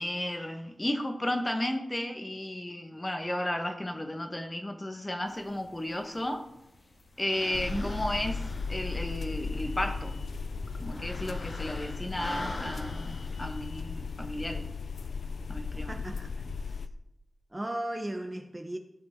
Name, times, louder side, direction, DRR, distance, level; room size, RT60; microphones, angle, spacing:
voice 1, 0.0-6.4 7.2-8.4 8.7-10.1 10.8-14.7 15.5-16.0, left 1 dB, 20° left, 5 dB, 1.4 m, -33 dB
sound 1, 5.3-14.5, left 2 dB, 60° left, 2.0 m, -45 dB
sound 2, 7.5-16.9, left 4 dB, 80° left, 0.5 m, -36 dB
voice 2, 15.9-16.8 17.5-18.8, right 1 dB, 20° right, 5 dB, 1.0 m, -36 dB
17.5 x 5.9 x 3.8 m, 0.87 s
cardioid pair, 65°, 0 cm